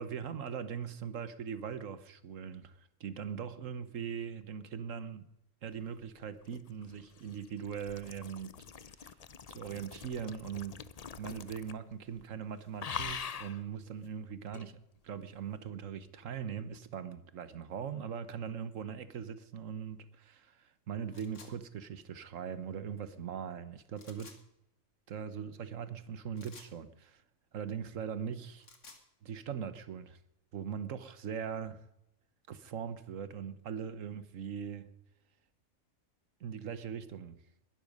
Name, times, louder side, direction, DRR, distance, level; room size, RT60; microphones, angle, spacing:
voice 1, 0.0-5.3 5.6-8.5 9.5-10.8 11.2-14.8 15.0-24.4 25.1-27.2 27.5-28.7 29.2-30.2 30.5-31.8 32.5-34.9 36.4-37.4, right 7 dB, 80° right, 1.4 m, -40 dB
sound 1, 6.2-11.9 12.2-12.4 12.8-13.6 14.5-14.7, left 6 dB, 45° left, 0.5 m, -44 dB
sound 2, 21.1-21.5 23.9-24.4 26.4-26.7 28.4-29.0, left 4 dB, 70° left, 2.3 m, -54 dB
20.5 x 12.0 x 5.3 m
omnidirectional pair, 1.3 m